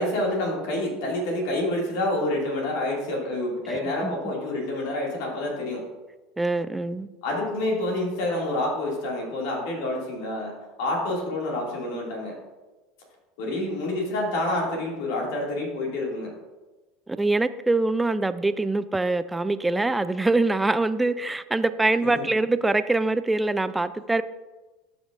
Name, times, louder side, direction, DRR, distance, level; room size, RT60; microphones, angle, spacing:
voice 1, 0.0-5.8 7.2-12.3 13.4-16.3 22.1-22.2, left 1 dB, 70° left, -2 dB, 2.3 m, -28 dB
voice 2, 6.4-7.1 13.6-13.7 17.1-24.2, right 2 dB, 10° right, 13 dB, 0.4 m, -24 dB
13.0 x 5.3 x 2.5 m, 1.2 s
hypercardioid pair, 80°, 0 cm